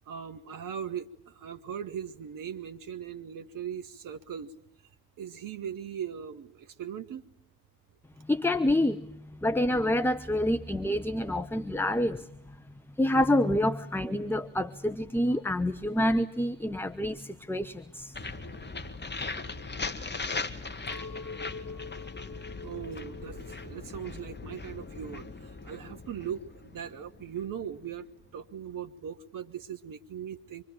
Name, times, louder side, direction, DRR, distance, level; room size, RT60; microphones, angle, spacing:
voice 1, 0.1-4.5 5.2-7.2 22.6-28.1 28.3-30.6, right 8 dB, 45° right, 10 dB, 1.2 m, -39 dB
voice 2, 8.3-12.3 13.0-18.1, left 1 dB, 5° left, 10 dB, 1.0 m, -27 dB
sound 1, 18.1-27.9, left 3 dB, 25° left, 2.0 m, -39 dB
Chink clink, 20.9-25.2 25.5-26.3, left 4 dB, 45° left, 3.9 m, -46 dB
26.0 x 22.5 x 9.0 m, 0.73 s
figure-of-eight pair, 40°, 44 cm